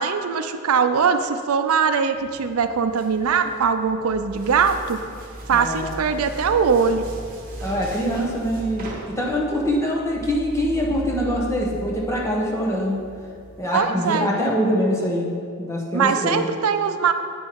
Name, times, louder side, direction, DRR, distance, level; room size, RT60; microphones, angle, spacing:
voice 1, 0.0-5.0 5.5-7.1 13.7-14.3 15.9-17.1, right 6 dB, 85° right, 9 dB, 0.5 m, -21 dB
sound 1, 2.1-13.6, right 1 dB, 40° right, 1.2 m, -38 dB
voice 2, 5.5-6.0 7.6-13.0 13.6-15.3 15.6-16.5, equal, 15° left, -3 dB, 1.1 m, -24 dB
8.5 x 5.6 x 4.6 m, 2.3 s
head